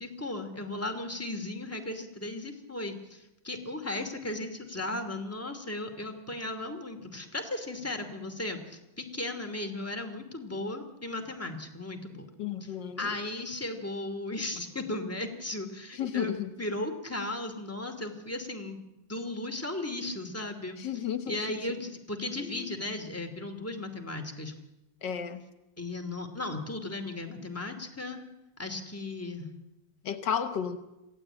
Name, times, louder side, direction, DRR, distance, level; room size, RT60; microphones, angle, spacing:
voice 1, 0.0-12.3 12.6-16.3 16.6-20.8 21.3-24.5 25.8-28.2 28.6-29.5, left 2 dB, 10° left, 5 dB, 2.5 m, -36 dB
voice 2, 12.4-13.2 15.9-16.5 20.8-21.4 22.4-22.7 25.0-25.4 30.0-30.8, left 8 dB, 75° left, 10 dB, 1.8 m, -33 dB
26.5 x 16.0 x 8.9 m, 1.0 s
omnidirectional pair, 1.9 m